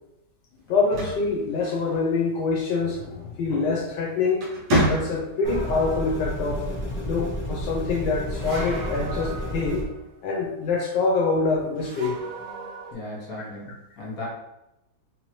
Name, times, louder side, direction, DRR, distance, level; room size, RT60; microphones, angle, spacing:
voice 1, 0.7-4.5 4.9-6.7 7.0-9.9 10.2-12.2, left 4 dB, 75° left, 0 dB, 1.2 m, -25 dB
sound 1, 0.7-2.2 3.7-3.9 4.3-5.5, equal, 70° right, 1.6 m, -26 dB
sound 2, 5.4-9.8, equal, 15° left, 0.4 m, -31 dB
sound 3, 5.4-6.7 8.3-10.2 11.8-12.9, right 3 dB, 90° right, 1.4 m, -39 dB
voice 2, 12.9-14.3, left 2 dB, 55° left, -6 dB, 1.6 m, -36 dB
3.7 x 2.8 x 3.0 m, 0.90 s
omnidirectional pair, 1.9 m